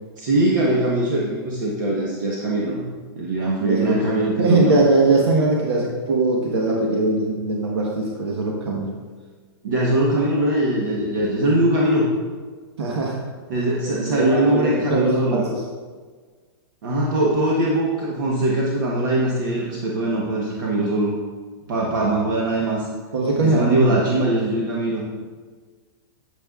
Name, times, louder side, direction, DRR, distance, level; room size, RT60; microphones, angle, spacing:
voice 1, 0.2-2.9 3.1-4.8 9.6-12.1 13.5-15.4 16.8-21.1 21.7-22.9 23.4-25.0, right 1 dB, 50° right, -3 dB, 1.1 m, -21 dB
voice 2, 3.6-8.9 12.8-13.2 13.9-15.6 23.1-24.0, right 2 dB, 80° right, -1 dB, 1.2 m, -21 dB
9.0 x 8.1 x 2.4 m, 1.5 s
supercardioid pair, 175°, 13 cm